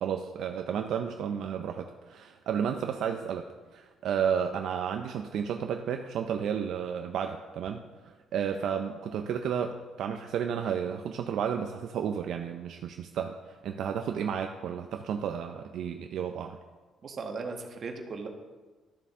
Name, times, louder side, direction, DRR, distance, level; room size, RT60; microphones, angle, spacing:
voice 1, 0.0-3.5 3.7-16.6, right 8 dB, 65° right, 5 dB, 0.5 m, -32 dB
voice 2, 17.0-18.3, right 4 dB, 40° right, 3 dB, 1.2 m, -37 dB
12.5 x 6.9 x 3.6 m, 1.3 s
cardioid pair, 140°, 0 cm